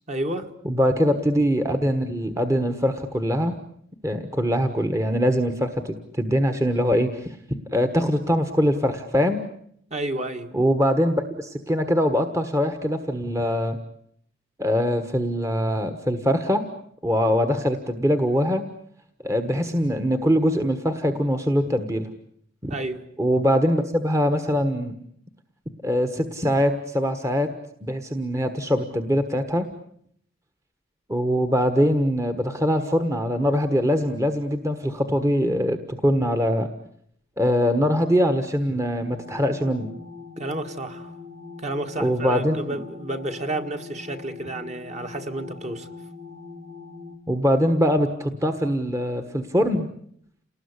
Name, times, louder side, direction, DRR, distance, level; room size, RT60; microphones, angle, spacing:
voice 1, 0.1-0.5 9.9-10.5 22.7-23.1 40.4-41.1 41.6-45.9, right 1 dB, 35° right, 2.0 m, -31 dB
voice 2, 0.6-3.6 4.0-9.4 10.5-13.8 14.6-16.6 17.0-18.6 19.2-22.1 22.6-22.7 23.2-25.0 25.8-27.5 27.8-29.6 31.1-36.7 37.4-39.9 42.0-42.8 47.3-49.9, equal, 15° right, 1.4 m, -22 dB
sound 1, 39.0-47.2, left 4 dB, 65° right, 3.9 m, -42 dB
29.0 x 19.5 x 9.8 m
head